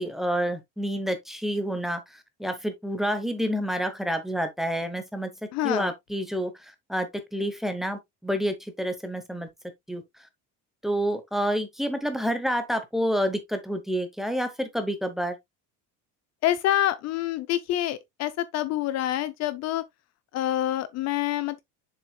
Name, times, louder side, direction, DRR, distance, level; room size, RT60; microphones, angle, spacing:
voice 1, 0.0-5.3 5.6-9.5 9.9-10.0 10.8-15.4, equal, ahead, 0.8 m, -28 dB
voice 2, 5.5-5.9 16.4-19.8 20.3-21.6, left 13 dB, 50° left, 0.5 m, -27 dB
7.1 x 6.0 x 2.3 m
cardioid pair, 170°, 35 cm